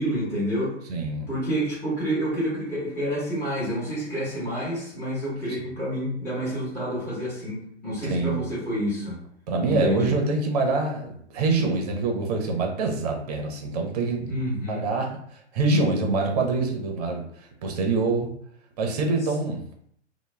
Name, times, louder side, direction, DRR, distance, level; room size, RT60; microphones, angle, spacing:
voice 1, 0.0-0.7 1.3-9.2 9.6-10.1 14.3-14.8, equal, 5° left, -9 dB, 0.7 m, -28 dB
voice 2, 0.9-1.3 8.0-8.4 9.5-14.3 14.7-15.1 15.5-17.2 17.6-18.3 18.8-19.6, right 3 dB, 35° right, 2 dB, 0.5 m, -25 dB
2.1 x 2.0 x 3.1 m, 0.66 s
figure-of-eight pair, 115°, 36 cm